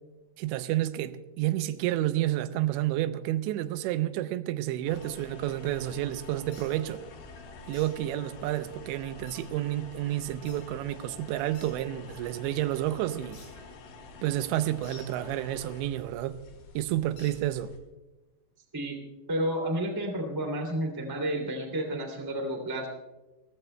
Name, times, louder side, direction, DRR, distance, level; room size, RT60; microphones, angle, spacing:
voice 1, 0.4-7.0 7.7-13.4 14.2-16.4 16.8-17.7, right 14 dB, 85° right, 2.9 m, -30 dB
sound 1, 4.9-17.8, left 3 dB, 90° left, 4.2 m, -48 dB
sound 2, 6.5-6.7 7.7-7.9 9.3-9.4 10.5-10.6 11.5-11.7 13.3-13.5 14.8-15.1 17.2-17.4, left 4 dB, 65° left, 7.5 m, -50 dB
voice 2, 19.3-22.9, right 1 dB, 10° right, 1.4 m, -31 dB
29.0 x 15.0 x 2.2 m
omnidirectional pair, 5.1 m